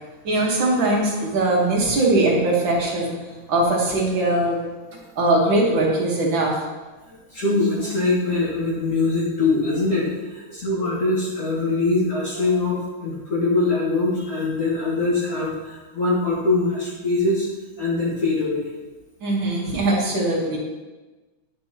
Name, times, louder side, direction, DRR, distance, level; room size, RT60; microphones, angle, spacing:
voice 1, 0.2-3.1 3.5-4.6 5.2-6.6 19.2-20.6, right 2 dB, 70° right, -2 dB, 2.2 m, -20 dB
voice 2, 7.1-17.5 17.8-18.7, left 3 dB, 45° left, -7 dB, 1.8 m, -23 dB
9.8 x 6.1 x 2.9 m, 1.2 s
omnidirectional pair, 2.2 m